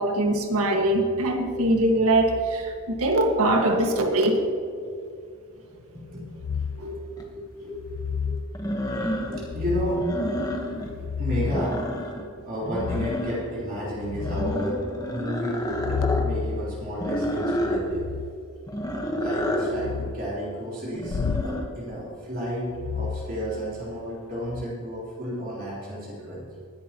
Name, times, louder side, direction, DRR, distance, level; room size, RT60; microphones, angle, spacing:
voice 1, 0.0-4.4 6.8-6.9, right 1 dB, 85° right, 3 dB, 1.8 m, -22 dB
voice 2, 5.9-6.2 6.7-8.7 9.3-18.0 19.2-26.5, equal, 40° right, -7 dB, 3.7 m, -32 dB
sound 1, 6.4-6.9 7.7-8.5 9.4-10.1 10.7-11.8 12.7-13.3 13.7-14.6 15.6-18.3 19.7-20.2 21.1-21.5 22.7-23.9 24.4-24.6, left 6 dB, 60° left, 0.3 m, -31 dB
sound 2, 7.2-7.3 8.5-9.5 9.9-11.0 11.3-12.3 12.6-13.6 14.1-16.3 17.0-17.8 18.7-19.7 20.9-21.6, equal, 15° left, 1.2 m, -29 dB
21.0 x 11.0 x 3.0 m, 2.4 s
head